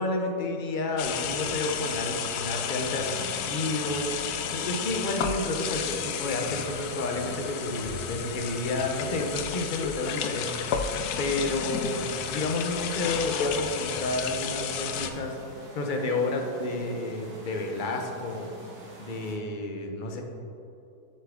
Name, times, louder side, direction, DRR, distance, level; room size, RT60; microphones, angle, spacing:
voice 1, 0.0-15.4 15.8-18.5 19.0-20.2, left 2 dB, 45° left, 3 dB, 0.7 m, -31 dB
sound 1, 1.0-15.1, left 7 dB, 90° left, 1.1 m, -32 dB
sound 2, 2.6-19.4, right 2 dB, 10° right, 1.7 m, -48 dB
7.3 x 6.8 x 3.6 m, 2.7 s
omnidirectional pair, 1.6 m